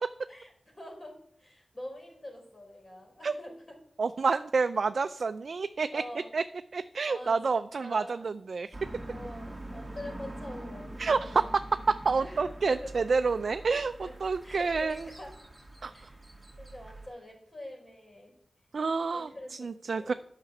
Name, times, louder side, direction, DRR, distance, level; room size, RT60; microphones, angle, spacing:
voice 1, 0.3-3.8 5.9-6.3 7.0-8.4 9.1-11.5 12.2-13.1 14.0-15.4 15.8-16.2 16.6-18.4 19.1-20.2, left 1 dB, 40° left, 0 dB, 4.7 m, -45 dB
voice 2, 4.0-6.0 6.3-6.4 6.7-8.7 11.0-11.5 11.9-15.1 15.8-16.1 18.7-20.1, right 4 dB, 75° right, 10 dB, 0.3 m, -29 dB
sound 1, 8.7-17.1, right 1 dB, 15° right, 2.7 m, -44 dB
9.8 x 5.8 x 7.0 m, 0.68 s
wide cardioid pair, 65°, 0 cm